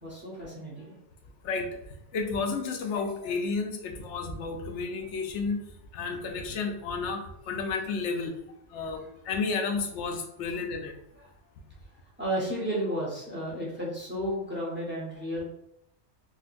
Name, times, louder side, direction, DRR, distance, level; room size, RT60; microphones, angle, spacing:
voice 1, 0.0-1.0 8.8-8.9 11.2-11.3 12.2-15.4, equal, 10° right, -7 dB, 1.0 m, -33 dB
voice 2, 2.1-5.6 5.9-8.3 8.7-10.9, left 4 dB, 80° left, 3 dB, 0.9 m, -31 dB
3.8 x 2.4 x 2.5 m, 0.81 s
omnidirectional pair, 1.2 m